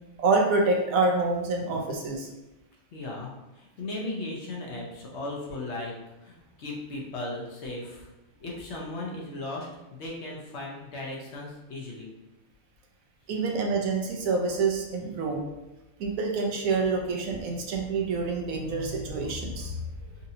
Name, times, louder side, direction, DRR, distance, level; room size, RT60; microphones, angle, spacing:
voice 1, 0.2-2.3 13.3-15.4 16.0-20.1, right 3 dB, 85° right, 1 dB, 1.1 m, -27 dB
voice 2, 2.9-5.9 6.2-8.1 8.4-12.1, left 2 dB, 60° left, -2 dB, 1.0 m, -37 dB
4.1 x 2.6 x 2.7 m, 1.0 s
omnidirectional pair, 1.4 m